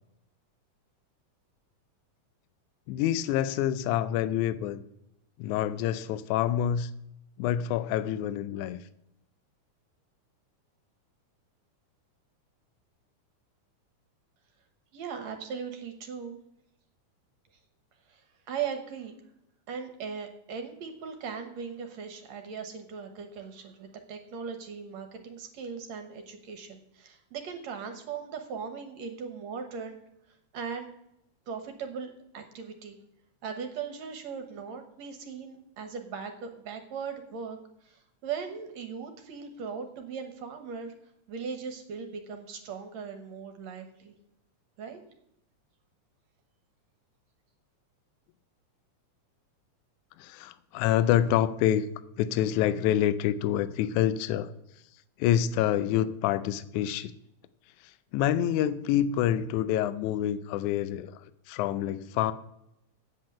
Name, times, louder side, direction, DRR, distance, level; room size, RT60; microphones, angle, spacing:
voice 1, 2.9-4.8 5.4-6.9 7.4-8.8 50.2-51.9 52.2-54.5 55.2-57.1 58.1-61.2 61.5-62.3, left 11 dB, 80° left, 13 dB, 2.0 m, -27 dB
voice 2, 14.9-16.4 18.1-19.1 19.7-30.0 30.3-30.9 31.5-33.0 33.4-40.9 41.3-44.1 44.8-45.0, right 6 dB, 65° right, 6 dB, 2.1 m, -39 dB
8.2 x 7.9 x 8.6 m, 0.80 s
omnidirectional pair, 3.6 m